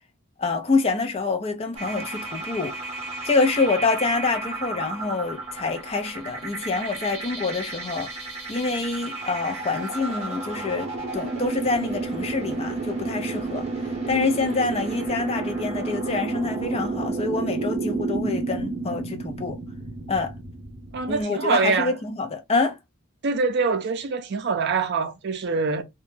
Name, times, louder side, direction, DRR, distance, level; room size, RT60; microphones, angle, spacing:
voice 1, 0.4-2.8 3.2-8.1 8.5-13.7 14.1-19.6 20.1-20.3 21.1-22.8, left 3 dB, 30° left, 0.4 m, -26 dB
sound 1, 1.8-21.2, right 3 dB, 30° right, 0.8 m, -31 dB
voice 2, 20.9-21.9 23.2-25.8, right 4 dB, 55° right, 0.4 m, -24 dB
2.2 x 2.0 x 3.1 m
head